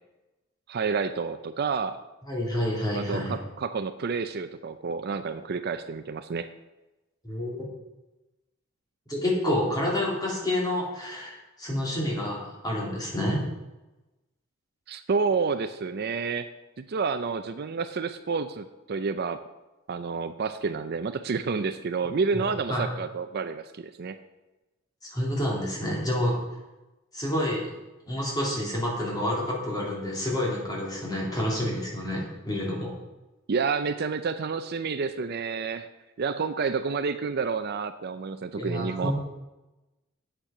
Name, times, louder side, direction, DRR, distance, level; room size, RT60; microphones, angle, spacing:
voice 1, 0.7-2.0 2.9-6.5 14.9-16.5 16.8-19.4 19.9-24.2 33.5-35.9 36.2-39.1, right 5 dB, 50° right, 10 dB, 0.5 m, -29 dB
voice 2, 2.2-3.3 7.2-7.7 9.1-13.4 22.3-22.9 25.0-26.4 27.1-27.7 28.1-32.9 38.6-39.1, left 1 dB, 20° left, -4 dB, 3.0 m, -29 dB
8.9 x 8.2 x 5.8 m, 1.1 s
head